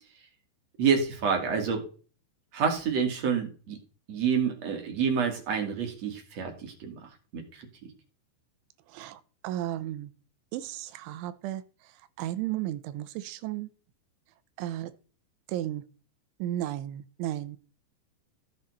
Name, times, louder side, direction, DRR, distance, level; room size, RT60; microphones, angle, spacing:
voice 1, 0.8-1.9 2.5-3.8 4.1-7.0 7.3-7.7, right 6 dB, 45° right, 3 dB, 2.7 m, -28 dB
voice 2, 8.9-10.1 10.5-13.7 14.6-14.9 15.5-15.8 16.4-17.6, right 13 dB, 90° right, 12 dB, 3.2 m, -34 dB
15.0 x 7.4 x 4.2 m, 0.37 s
omnidirectional pair, 5.4 m